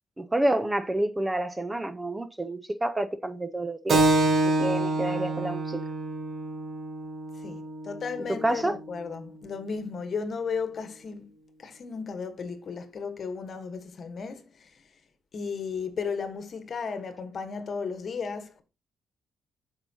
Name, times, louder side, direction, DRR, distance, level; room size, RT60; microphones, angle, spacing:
voice 1, 0.2-4.0 4.4-5.8 8.4-8.7, right 1 dB, 15° right, 0.6 m, -28 dB
Keyboard (musical), 3.9-9.0, right 2 dB, 50° right, 1.2 m, -27 dB
voice 2, 7.4-11.3 11.6-14.7 15.3-18.6, left 5 dB, 50° left, 1.2 m, -34 dB
7.9 x 5.5 x 2.8 m
cardioid pair, 90°, 0 cm